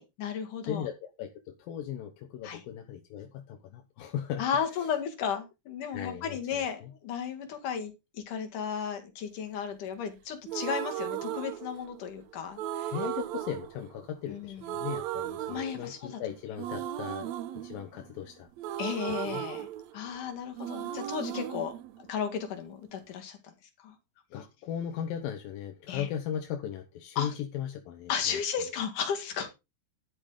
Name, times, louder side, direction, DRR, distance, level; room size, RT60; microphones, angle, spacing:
voice 1, 0.0-0.9 2.4-2.6 4.4-12.9 14.3-14.8 15.5-16.2 18.8-19.7 19.9-23.5 23.8-23.9 25.9-26.1 27.2-27.3 28.1-29.5, left 7 dB, 65° left, 3.5 m, -34 dB
voice 2, 0.6-4.4 5.9-6.9 12.9-18.5 19.3-19.4 24.3-28.4, left 9 dB, 85° left, 2.8 m, -37 dB
sound 1, 10.5-12.1 12.6-14.3 14.6-16.2 16.6-20.3 20.6-22.6, right 12 dB, 75° right, 1.7 m, -36 dB
11.5 x 8.7 x 3.9 m
omnidirectional pair, 4.0 m